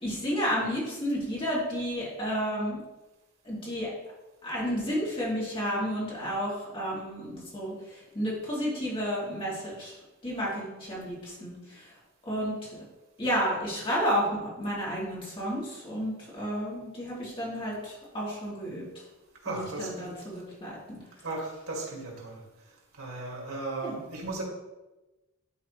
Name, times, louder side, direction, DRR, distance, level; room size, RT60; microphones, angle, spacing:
voice 1, 0.0-2.8 3.4-3.9 4.4-9.9 10.2-11.9 12.3-12.7 13.2-18.8 19.5-21.0 23.8-24.0, equal, 25° left, -7 dB, 2.6 m, -31 dB
voice 2, 19.4-20.2 21.2-22.4 23.0-24.4, right 2 dB, 80° right, -2 dB, 2.3 m, -36 dB
11.5 x 4.0 x 3.2 m, 1.1 s
head